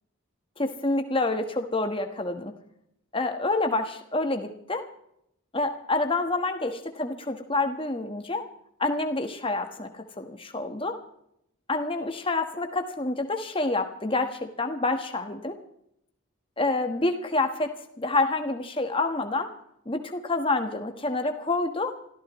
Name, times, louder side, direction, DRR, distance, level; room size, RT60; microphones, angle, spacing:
voice 1, 0.6-2.5 3.1-4.8 5.5-8.4 8.8-9.9 10.2-10.9 11.7-15.5 16.6-17.7 18.0-19.5 19.9-21.9, left 2 dB, 25° left, 6 dB, 1.4 m, -27 dB
28.0 x 14.5 x 3.1 m, 0.76 s
head